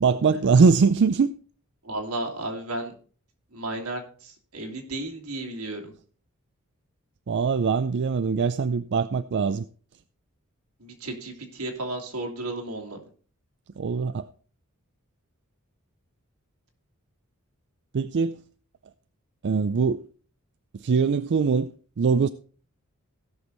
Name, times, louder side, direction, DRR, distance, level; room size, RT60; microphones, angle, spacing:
voice 1, 0.0-1.3 7.3-9.6 13.8-14.3 17.9-18.4 19.4-20.0 20.8-22.3, right 5 dB, 55° right, 0.4 m, -22 dB
voice 2, 1.8-2.9 3.5-5.9 10.8-13.0, right 2 dB, 85° right, 2.6 m, -33 dB
16.5 x 6.3 x 3.9 m
head